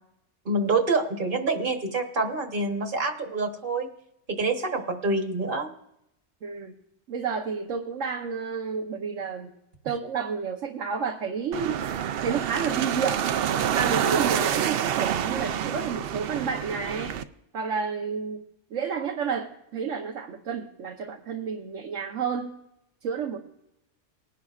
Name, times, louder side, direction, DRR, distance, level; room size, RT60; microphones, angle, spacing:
voice 1, 0.4-3.9 4.3-5.7, right 3 dB, 45° right, 5 dB, 1.3 m, -26 dB
voice 2, 6.4-6.8 7.1-9.5 9.8-11.8 12.2-13.2 13.7-17.1 17.5-18.4 18.7-22.6 23.0-23.4, right 6 dB, 90° right, 0 dB, 1.3 m, -30 dB
sound 1, 11.5-17.2, right 9 dB, 65° right, 0.7 m, -27 dB
20.0 x 11.0 x 2.4 m, 0.80 s
omnidirectional pair, 1.2 m